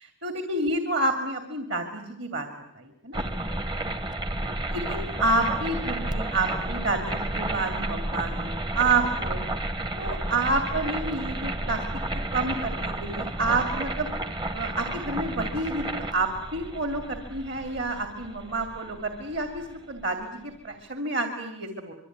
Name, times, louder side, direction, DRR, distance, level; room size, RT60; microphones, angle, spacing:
voice 1, 0.2-2.5 2.8-3.2 4.7-9.4 10.0-11.8 12.3-14.1 14.5-21.9, right 2 dB, 55° right, 6 dB, 2.8 m, -29 dB
sound 1, 3.1-20.0, right 1 dB, 20° right, 1.0 m, -32 dB
26.0 x 24.0 x 9.5 m, 0.80 s
head